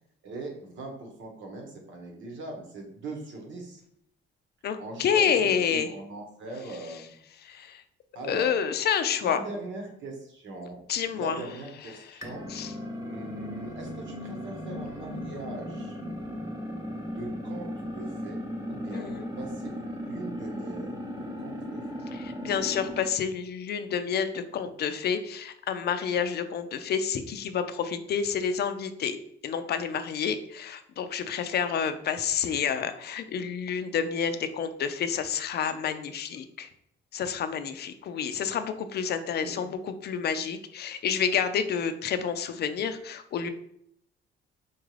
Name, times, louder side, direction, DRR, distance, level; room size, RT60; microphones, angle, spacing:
voice 1, 0.2-3.8 4.8-7.1 8.1-8.5 9.2-10.8 11.1-12.5 13.0-16.0 17.0-18.4 18.7-21.8 39.4-39.7, right 2 dB, 70° right, 1 dB, 1.2 m, -40 dB
voice 2, 4.6-5.9 7.4-7.8 8.3-9.4 10.9-11.4 12.5-12.7 18.9-19.3 22.1-29.2 29.4-36.7 37.1-43.5, left 7 dB, 55° left, 10 dB, 0.4 m, -29 dB
sound 1, 12.2-23.1, equal, 15° right, 0.8 m, -37 dB
4.4 x 2.4 x 3.2 m, 0.71 s
cardioid pair, 90°, 20 cm